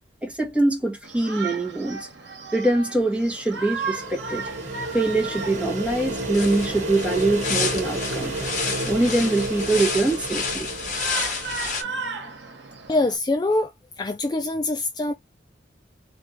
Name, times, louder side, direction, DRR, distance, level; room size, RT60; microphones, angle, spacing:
voice 1, 0.2-2.1 2.5-4.5 4.9-8.3 8.8-10.7, right 2 dB, 5° right, 1.4 m, -23 dB
Shout, 1.0-13.2, right 4 dB, 75° right, 1.2 m, -36 dB
sound 1, 3.1-11.9, right 1 dB, 40° right, 1.5 m, -32 dB
sound 2, 5.8-11.8, left 4 dB, 40° left, 2.0 m, -30 dB
voice 2, 12.9-13.7 14.0-15.1, left 2 dB, 25° left, 0.3 m, -24 dB
3.5 x 3.0 x 4.5 m
head